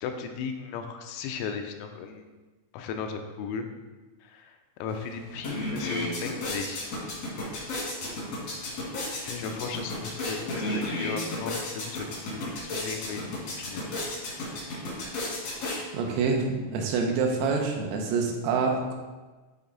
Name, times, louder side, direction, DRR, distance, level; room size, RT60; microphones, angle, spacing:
voice 1, 0.0-2.2 2.7-3.7 4.2-6.9 9.2-13.3 13.6-13.8 14.3-14.6, left 6 dB, 90° left, 5 dB, 3.3 m, -36 dB
sound 1, 4.9-5.0 5.3-16.2, left 1 dB, 70° left, 1.6 m, -33 dB
voice 2, 15.9-18.9, right 4 dB, 85° right, 1 dB, 3.6 m, -26 dB
10.5 x 3.5 x 3.9 m, 1.3 s
omnidirectional pair, 5.9 m